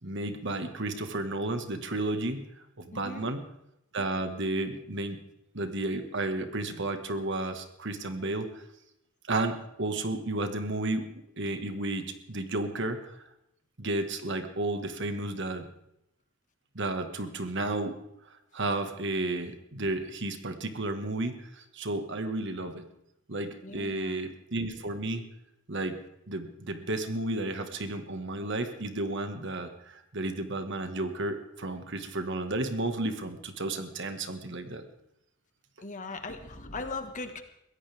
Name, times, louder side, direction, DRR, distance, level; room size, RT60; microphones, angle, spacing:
voice 1, 0.0-2.5 2.8-3.5 3.9-5.2 5.5-8.6 9.3-13.2 13.8-15.7 16.8-17.9 18.5-22.9 23.3-25.3 25.7-26.0 26.3-34.8, right 2 dB, 60° right, 7 dB, 1.8 m, -32 dB
voice 2, 2.9-3.3 23.6-24.2 35.8-37.4, left 3 dB, 40° left, 7 dB, 1.7 m, -39 dB
23.0 x 16.5 x 3.6 m, 0.81 s
head